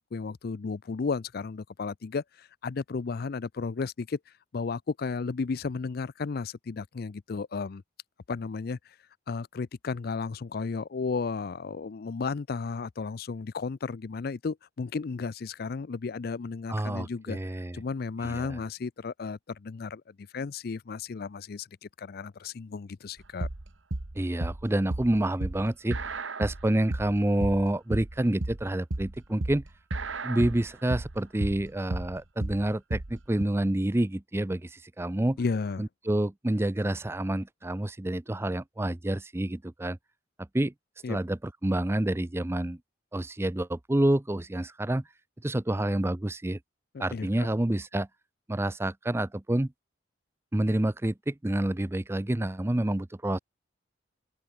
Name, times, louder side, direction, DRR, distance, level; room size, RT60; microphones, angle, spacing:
voice 1, 0.0-4.2 4.5-7.8 8.3-8.8 9.3-17.4 17.7-23.5 35.4-35.9 41.0-41.2 46.9-47.5, left 4 dB, 50° left, 0.4 m, -34 dB
voice 2, 16.7-17.8 18.2-18.6 24.2-26.0 26.4-29.6 30.2-35.4 35.8-40.0 40.5-40.7 41.1-42.8 43.1-45.0 45.4-46.6 47.0-48.1 48.5-49.7 50.5-53.4, right 1 dB, 15° right, 0.5 m, -28 dB
sound 1, 23.2-33.4, right 2 dB, 80° right, 1.5 m, -33 dB
open air
head